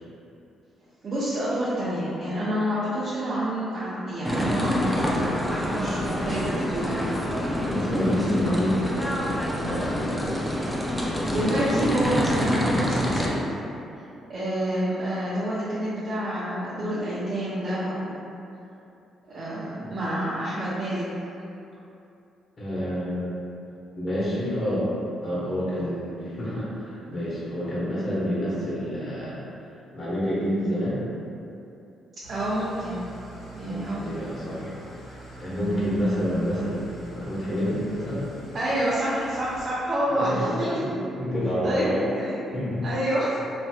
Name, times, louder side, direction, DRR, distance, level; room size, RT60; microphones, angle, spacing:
voice 1, 1.0-5.4 5.7-7.1 11.3-13.4 13.9-14.0 14.3-18.1 19.3-21.1 32.3-33.0 33.5-34.1 35.5-35.8 38.5-40.8 41.6-42.3 42.8-43.4, right 1 dB, 50° right, -10 dB, 0.6 m, -28 dB
sound 1, 4.2-13.3, equal, 5° left, 0.4 m, -26 dB
voice 2, 7.6-10.6 19.8-19.9 22.6-23.3 23.9-24.9 25.2-29.4 29.9-31.0 33.6-34.7 35.0-38.3 40.1-42.0 42.5-42.9, equal, 40° left, -9 dB, 1.1 m, -28 dB
Engine starting / Idling, 32.2-39.7, right 1 dB, 65° left, 1.2 m, -45 dB
3.0 x 2.7 x 2.3 m, 2.7 s
cardioid pair, 90°, 0 cm